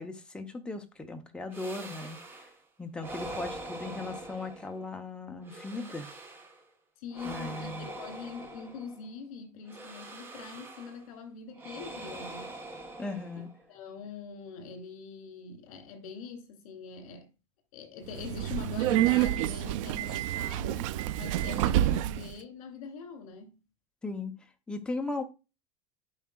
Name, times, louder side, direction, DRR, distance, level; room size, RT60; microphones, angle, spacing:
voice 1, 0.0-2.2 2.8-6.1 7.3-7.9 13.0-13.5 24.0-24.3 24.7-25.2, left 3 dB, 5° left, 0.6 m, -37 dB
sound 1, 1.5-2.6 3.0-5.0 5.4-6.7 7.1-9.1 9.7-11.1 11.6-13.7, right 2 dB, 10° right, 0.9 m, -43 dB
voice 2, 7.0-12.5 13.7-17.3 17.7-20.9 21.2-23.6, left 5 dB, 75° left, 2.6 m, -43 dB
Subway metro underground, 18.1-22.3, right 13 dB, 60° right, 0.4 m, -28 dB
11.0 x 4.7 x 2.3 m
supercardioid pair, 175°, 18 cm